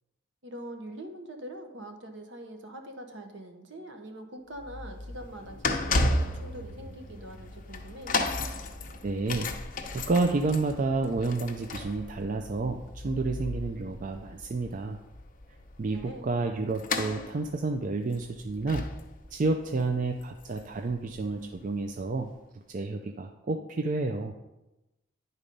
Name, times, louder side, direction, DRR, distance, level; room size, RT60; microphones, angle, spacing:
voice 1, 0.4-8.1 15.9-16.3, right 1 dB, 65° right, 5 dB, 1.1 m, -43 dB
sound 1, 4.6-21.5 22.2-22.3, left 2 dB, 45° left, 0.7 m, -34 dB
voice 2, 9.0-9.5 9.9-15.0 15.8-18.9 19.3-22.3 22.7-24.3, right 3 dB, 40° right, 4 dB, 0.4 m, -30 dB
9.9 x 4.0 x 5.3 m, 1.0 s
head